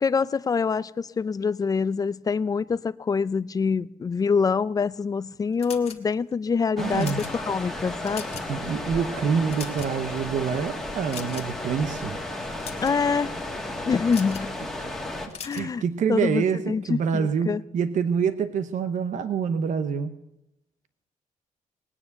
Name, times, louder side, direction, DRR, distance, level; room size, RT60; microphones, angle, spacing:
voice 1, 0.0-8.2 12.8-13.3 13.9-14.5 15.4-15.8 16.1-17.6, left 5 dB, 25° left, 16 dB, 0.5 m, -25 dB
sound 1, 5.6-6.3 6.8-7.4 7.9-8.6 8.9-9.0 9.4-10.1 11.1-11.6 12.4-13.0 14.1-14.5 15.3-15.7, left 7 dB, 45° left, 1.7 m, -40 dB
sound 2, 6.8-15.3, left 1 dB, ahead, 2.0 m, -34 dB
voice 2, 6.8-7.2 8.5-12.2 15.5-20.1, right 6 dB, 65° right, 11 dB, 0.9 m, -26 dB
20.0 x 9.7 x 6.6 m, 0.85 s
cardioid pair, 150°, 14 cm